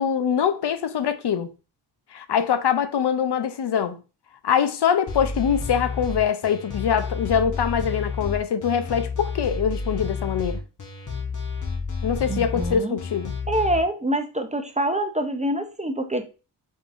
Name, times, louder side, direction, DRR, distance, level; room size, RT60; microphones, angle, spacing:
voice 1, 0.0-1.5 2.1-4.0 4.4-10.6 12.0-13.4, left 8 dB, 65° left, 0.6 m, -23 dB
sound 1, 5.1-13.8, left 4 dB, 45° left, 1.1 m, -30 dB
voice 2, 12.3-13.0 13.5-16.2, right 1 dB, 15° right, 0.6 m, -25 dB
5.1 x 3.7 x 2.5 m
wide cardioid pair, 75°, 44 cm